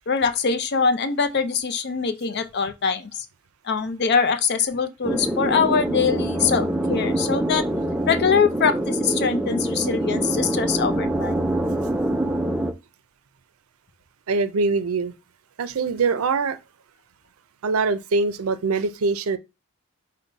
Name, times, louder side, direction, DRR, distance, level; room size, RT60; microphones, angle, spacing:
voice 1, 0.1-3.1 3.6-7.6 8.1-11.5, left 5 dB, 50° left, 0.5 m, -23 dB
sound 1, 5.0-12.7, right 1 dB, 5° right, 0.4 m, -25 dB
voice 2, 14.3-15.1 15.6-16.6 17.6-19.4, right 4 dB, 80° right, 0.5 m, -23 dB
5.2 x 2.1 x 4.0 m
head